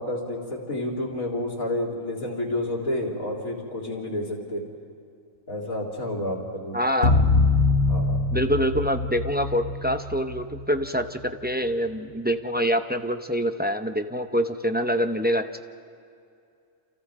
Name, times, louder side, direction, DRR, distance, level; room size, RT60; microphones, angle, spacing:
voice 1, 0.0-4.6 5.5-6.8 7.7-8.2, left 1 dB, 80° left, -2 dB, 4.0 m, -30 dB
voice 2, 6.7-7.2 8.3-15.5, equal, 10° right, 7 dB, 0.5 m, -25 dB
sound 1, 7.0-11.5, left 3 dB, 55° left, 1.5 m, -24 dB
29.5 x 28.5 x 3.7 m, 2.5 s
omnidirectional pair, 1.4 m